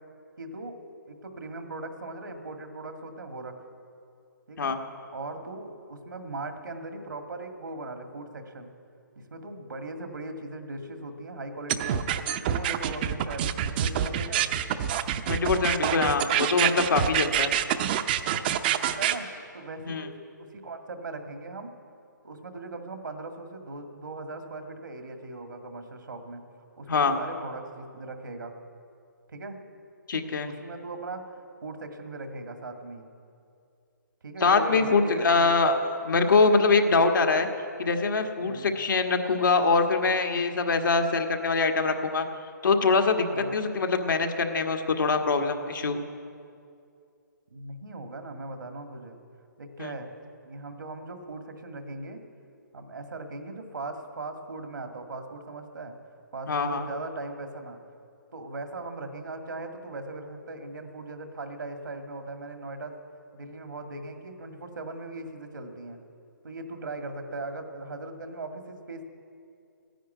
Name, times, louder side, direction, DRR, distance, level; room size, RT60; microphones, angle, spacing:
voice 1, 0.4-0.8 1.1-3.5 4.5-4.7 5.1-8.7 9.2-12.1 12.4-14.5 18.6-19.3 19.5-20.1 20.4-21.7 22.2-26.4 26.8-28.5 29.3-29.6 30.4-31.3 31.6-33.1 34.2-35.6 38.4-38.7 43.3-43.6 47.5-49.2 49.6-50.1 50.5-52.2 52.7-55.9 56.3-57.8 58.3-63.0 63.3-66.0 66.4-69.0, right 2 dB, 80° right, 6 dB, 2.0 m, -39 dB
sound 1, 11.7-19.2, right 10 dB, 30° right, 0.6 m, -26 dB
voice 2, 15.3-17.5 19.8-20.1 26.9-27.2 30.1-30.5 34.4-35.7 36.0-37.5 37.8-42.2 42.6-46.0 49.8-49.9 56.5-56.9, left 4 dB, 75° left, 4 dB, 1.5 m, -23 dB
14.5 x 10.0 x 9.3 m, 2.4 s
hypercardioid pair, 155°, 11 cm